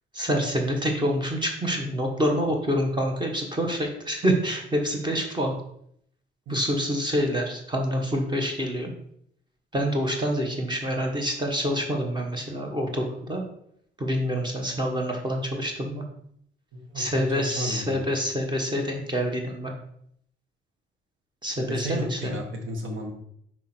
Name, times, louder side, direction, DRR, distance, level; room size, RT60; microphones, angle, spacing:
voice 1, 0.1-5.5 6.5-8.9 9.7-13.4 14.0-16.0 16.9-19.7 21.4-22.4, equal, 20° right, 1 dB, 1.3 m, -27 dB
voice 2, 16.7-17.0 17.3-18.0 21.6-23.1, equal, 75° right, 3 dB, 1.6 m, -32 dB
5.8 x 4.3 x 4.4 m, 0.69 s
cardioid pair, 90°, 20 cm